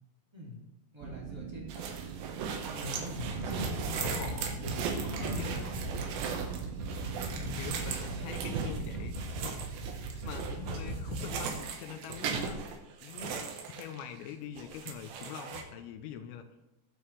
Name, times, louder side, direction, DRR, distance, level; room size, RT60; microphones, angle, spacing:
voice 1, 0.9-2.2 2.7-4.1 4.6-6.1 6.9-7.6 8.1-8.3, left 1 dB, 20° right, -5 dB, 0.7 m, -44 dB
sound 1, 1.0-9.1, right 9 dB, 90° right, 3.3 m, -44 dB
sound 2, 1.7-14.3 14.6-15.6, right 6 dB, 70° right, 3.2 m, -38 dB
sound 3, 3.2-11.5, right 2 dB, 50° right, 2.0 m, -38 dB
voice 2, 4.0-4.6 5.2-5.7 7.5-9.1 9.4-9.5 10.2-12.6 13.0-16.4, left 8 dB, 85° left, 7 dB, 3.3 m, -44 dB
20.0 x 7.7 x 3.4 m, 0.95 s
omnidirectional pair, 5.9 m